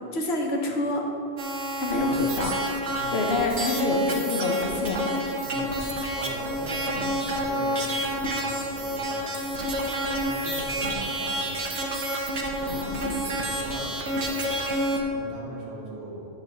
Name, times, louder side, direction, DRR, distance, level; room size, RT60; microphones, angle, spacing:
voice 1, 0.1-1.0 1.8-2.5 3.1-5.0 6.9-7.2 10.8-11.1 12.7-13.1, left 2 dB, 65° left, 1 dB, 1.3 m, -28 dB
sound 1, 1.4-15.0, equal, 75° right, 1.3 m, -28 dB
voice 2, 2.0-2.3 2.9-3.3 5.4-5.7 6.1-11.6 12.6-12.9 13.3-16.3, right 1 dB, 60° right, -6 dB, 2.4 m, -40 dB
10.5 x 4.0 x 7.1 m, 2.8 s
omnidirectional pair, 1.2 m